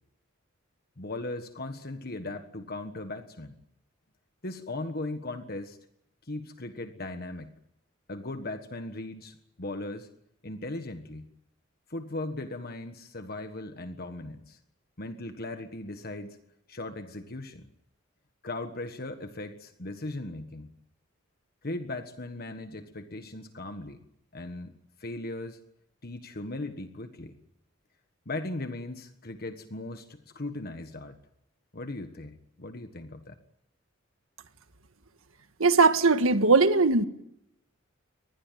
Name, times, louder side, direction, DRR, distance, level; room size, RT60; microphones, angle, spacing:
voice 1, 1.0-3.6 4.4-5.8 6.3-7.5 8.1-10.1 10.4-11.3 11.9-14.6 15.0-16.4 16.7-17.7 18.4-20.7 21.6-24.0 24.3-24.7 25.0-25.6 26.0-27.4 28.2-31.2 31.7-33.3, left 2 dB, 50° left, 7 dB, 1.5 m, -38 dB
voice 2, 35.6-37.1, right 4 dB, 80° right, 9 dB, 1.6 m, -20 dB
24.0 x 20.0 x 9.3 m, 0.79 s
head